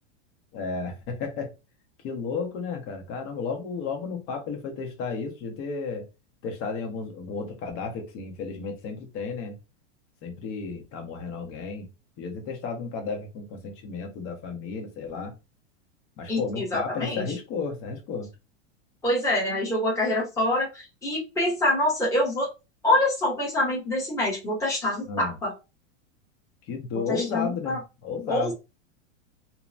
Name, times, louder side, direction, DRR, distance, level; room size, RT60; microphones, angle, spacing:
voice 1, 0.5-1.5 2.0-6.0 6.4-9.6 10.2-11.9 12.2-15.3 16.2-18.3 25.1-25.3 26.7-28.5, left 5 dB, 40° left, 0.9 m, -33 dB
voice 2, 16.3-17.3 19.0-22.5 22.8-25.5 26.9-27.8 28.3-28.5, left 1 dB, 10° left, 1.0 m, -26 dB
2.8 x 2.1 x 2.5 m
supercardioid pair, 140°, 35 cm